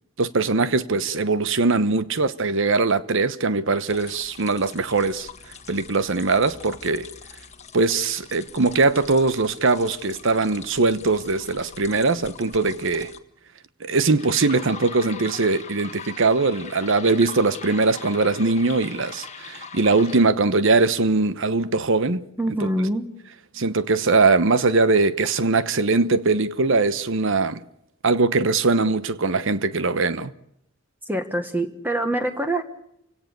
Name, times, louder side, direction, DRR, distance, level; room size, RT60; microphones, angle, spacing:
voice 1, 0.2-5.3 5.7-7.1 7.7-13.1 13.8-22.2 23.5-27.6 28.0-30.3, right 3 dB, 65° right, 1.0 m, -21 dB
sound 1, 3.9-13.2 14.2-20.3, left 5 dB, 35° left, 1.4 m, -42 dB
voice 2, 22.4-23.0 31.1-32.6, right 1 dB, 10° right, 1.4 m, -24 dB
29.0 x 17.0 x 6.8 m
head